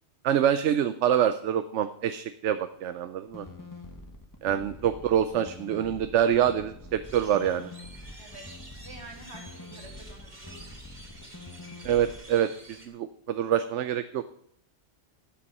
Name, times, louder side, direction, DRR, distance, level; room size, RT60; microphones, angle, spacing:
voice 1, 0.2-3.4 4.4-7.7 11.8-14.2, right 10 dB, 85° right, 11 dB, 1.0 m, -26 dB
sound 1, 3.3-12.2, left 2 dB, 15° left, 1.4 m, -45 dB
voice 2, 4.4-4.8 8.2-8.4 8.8-10.8, right 2 dB, 70° right, 1 dB, 3.2 m, -48 dB
sound 2, 7.0-12.9, right 1 dB, 40° right, 2.3 m, -49 dB
13.0 x 8.7 x 5.4 m, 0.68 s
omnidirectional pair, 1.2 m